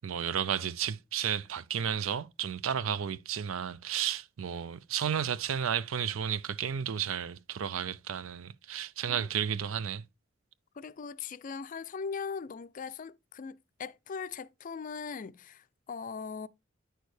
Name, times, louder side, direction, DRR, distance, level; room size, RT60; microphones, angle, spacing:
voice 1, 0.0-10.0, right 8 dB, 90° right, 0.5 m, -32 dB
voice 2, 10.7-16.5, left 5 dB, 40° left, 0.4 m, -40 dB
9.2 x 6.3 x 3.2 m
head